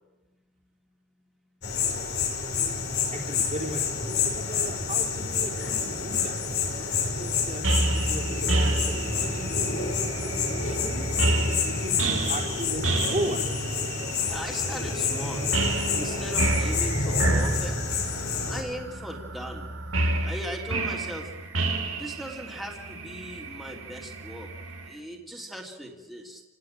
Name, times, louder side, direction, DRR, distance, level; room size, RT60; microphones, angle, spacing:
sound 1, 1.6-18.6, left 5 dB, 55° left, 4.5 m, -28 dB
voice 1, 2.4-2.8 3.1-6.4 7.0-11.1 11.7-13.7, right 1 dB, 35° right, 0 dB, 3.6 m, -37 dB
sound 2, 7.6-24.9, right 2 dB, 80° right, 3.3 m, -30 dB
voice 2, 14.3-15.6 15.9-17.7 18.5-21.3 22.0-24.5 24.9-26.4, equal, ahead, 0 dB, 3.3 m, -38 dB
29.5 x 18.5 x 9.1 m, 1.2 s
head